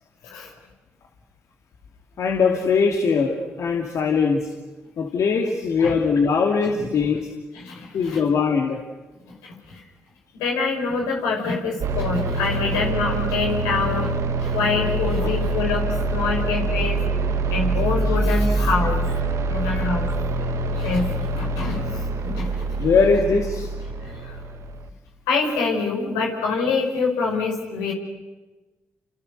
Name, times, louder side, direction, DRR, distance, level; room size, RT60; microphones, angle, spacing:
voice 1, 2.2-4.5 5.0-7.3 7.9-8.8 15.2-15.3 19.4-19.9 22.8-23.7, left 5 dB, 65° left, 2 dB, 2.6 m, -21 dB
voice 2, 7.5-8.2 10.3-15.8 16.1-17.0 17.5-19.0 19.5-20.1 20.7-22.6 25.3-27.9, left 4 dB, 90° left, -1 dB, 5.7 m, -25 dB
sound 1, 11.8-24.9, right 2 dB, 70° right, 2.0 m, -25 dB
29.5 x 28.0 x 6.7 m, 1.2 s
hypercardioid pair, 45°, 6 cm